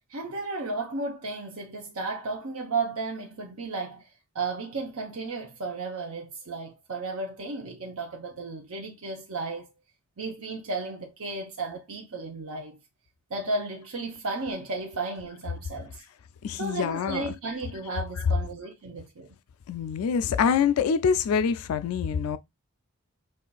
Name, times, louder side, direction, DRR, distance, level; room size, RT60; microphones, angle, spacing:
voice 1, 0.1-4.1 4.3-9.7 10.2-12.8 13.3-16.0 16.6-19.3, right 3 dB, 70° right, 0.8 m, -34 dB
voice 2, 16.4-17.2 19.7-22.4, left 6 dB, 80° left, 0.3 m, -25 dB
5.4 x 2.5 x 2.3 m
head